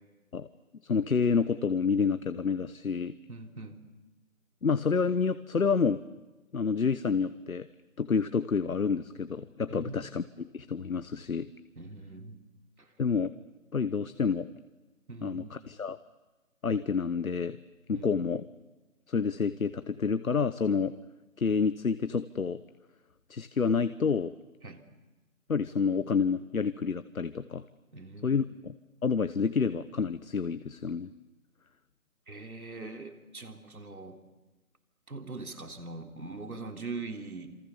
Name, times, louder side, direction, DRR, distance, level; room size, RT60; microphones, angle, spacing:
voice 1, 0.8-3.1 4.6-6.0 6.5-7.7 8.0-11.5 13.0-13.3 13.7-14.5 15.2-16.0 16.6-17.6 17.9-18.4 19.1-20.9 21.4-22.6 23.3-24.3 25.5-27.6 28.2-28.7 29.0-31.1, left 5 dB, 70° left, 12 dB, 1.2 m, -28 dB
voice 2, 3.3-3.8 9.7-10.0 11.8-12.4 12.8-12.9 15.1-15.6 17.9-18.3 24.6-24.8 27.9-28.4 32.3-34.2 35.1-37.5, right 3 dB, 75° right, 5 dB, 3.7 m, -42 dB
28.5 x 27.5 x 7.1 m, 1.1 s
figure-of-eight pair, 170°, 43 cm